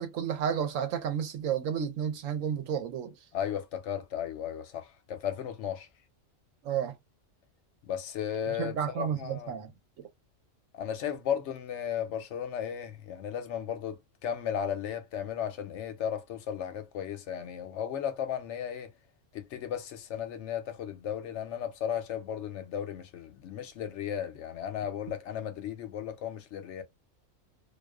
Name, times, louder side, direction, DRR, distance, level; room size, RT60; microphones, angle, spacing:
voice 1, 0.0-3.1 6.6-6.9 8.6-9.7, right 8 dB, 90° right, 1.1 m, -31 dB
voice 2, 3.3-5.9 7.8-9.6 10.7-18.9 19.3-26.8, left 9 dB, 70° left, 0.8 m, -35 dB
2.3 x 2.3 x 2.2 m
omnidirectional pair, 1.3 m